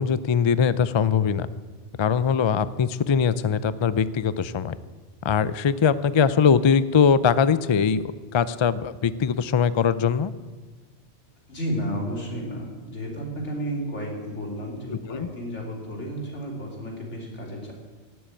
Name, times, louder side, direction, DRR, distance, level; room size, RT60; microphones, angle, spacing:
voice 1, 0.0-1.5 2.0-4.7 5.2-8.0 8.3-10.3 15.1-15.3, left 6 dB, 50° left, 16 dB, 0.3 m, -21 dB
voice 2, 11.5-17.7, equal, 85° left, -1 dB, 3.4 m, -32 dB
17.0 x 7.9 x 8.8 m, 1.4 s
omnidirectional pair, 1.2 m